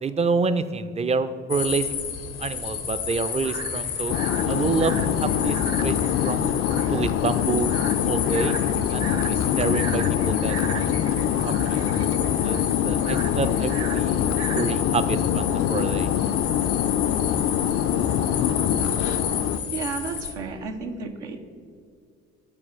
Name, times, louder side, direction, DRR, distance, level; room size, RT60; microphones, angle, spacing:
voice 1, 0.0-1.9 2.4-4.2 4.5-5.6 5.8-6.5 6.9-7.7 8.0-8.5 8.9-11.8 12.4-14.3 14.5-16.1, right 4 dB, 20° right, 12 dB, 0.4 m, -28 dB
sound 1, 1.5-20.3, left 7 dB, 80° left, 0.8 m, -31 dB
sound 2, 3.1-14.9, right 7 dB, 45° right, 0.8 m, -39 dB
sound 3, 4.1-19.6, left 10 dB, 40° left, 0.4 m, -24 dB
voice 2, 19.7-21.4, right 5 dB, 80° right, 4 dB, 0.6 m, -32 dB
11.5 x 4.3 x 4.2 m, 2.2 s
figure-of-eight pair, 40°, 35 cm